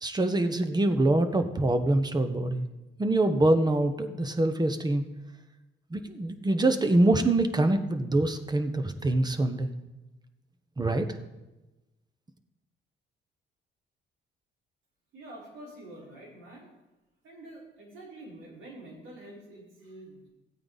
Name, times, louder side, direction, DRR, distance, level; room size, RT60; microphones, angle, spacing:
voice 1, 0.0-2.6 3.0-5.0 5.9-9.7 10.8-11.1, right 2 dB, 20° right, 9 dB, 1.0 m, -25 dB
voice 2, 15.1-16.7 17.2-20.3, right 1 dB, 80° right, -5 dB, 4.8 m, -47 dB
14.5 x 8.7 x 4.1 m, 1.0 s
cardioid pair, 90°, 20 cm